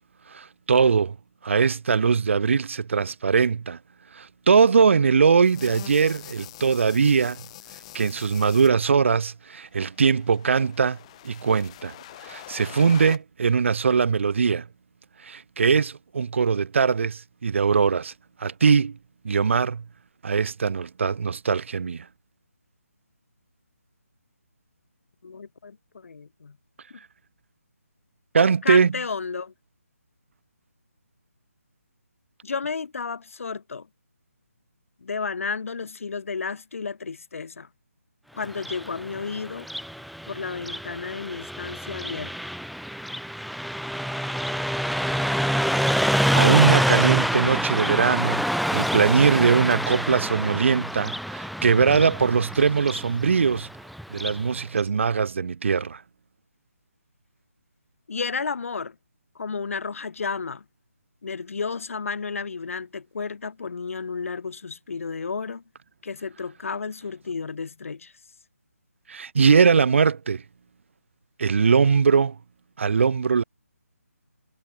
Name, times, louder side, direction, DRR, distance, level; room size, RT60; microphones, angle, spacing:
voice 1, 0.3-1.1 1.4-3.8 4.1-7.4 7.9-11.0 11.2-11.9 12.2-14.7 15.2-18.1 18.4-19.0 19.2-19.8 20.2-22.1 28.3-28.9 46.3-48.4 48.7-53.7 54.1-56.0 69.1-70.4 71.4-72.3 72.8-73.4, right 5 dB, 55° right, 0.7 m, -21 dB
sound 1, 5.4-8.7 9.8-13.2, left 14 dB, 25° left, 6.2 m, -44 dB
voice 2, 25.2-26.6 26.9-27.0 28.6-29.5 32.4-33.9 35.0-37.7 38.3-39.7 40.3-42.5 58.1-59.0 59.3-60.6 61.2-65.6 66.0-68.1, left 5 dB, 60° left, 1.4 m, -32 dB
Car passing by, 38.5-54.5, equal, ahead, 0.9 m, -27 dB
figure-of-eight pair, 165°, 8 cm